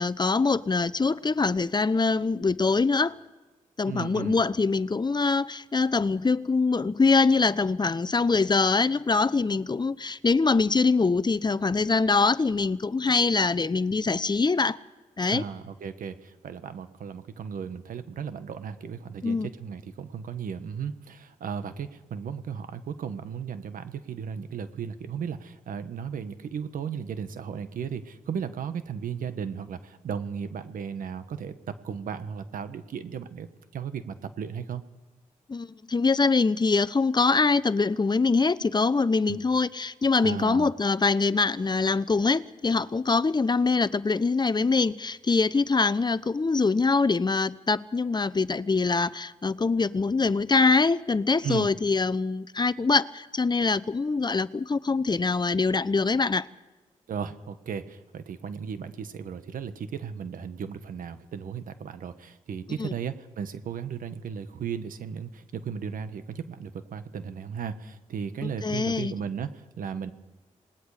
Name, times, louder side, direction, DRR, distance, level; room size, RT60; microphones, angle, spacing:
voice 1, 0.0-3.1 3.8-14.8 15.2-15.4 19.2-19.5 35.5-56.5 62.8-62.9 68.4-69.1, left 4 dB, 30° left, 0.8 m, -24 dB
voice 2, 3.9-4.4 15.2-33.5 33.7-34.8 39.3-39.4 40.2-40.7 51.4-51.7 57.1-70.1, right 7 dB, 75° right, 1.4 m, -35 dB
27.0 x 20.0 x 5.0 m
supercardioid pair, 50°, 14 cm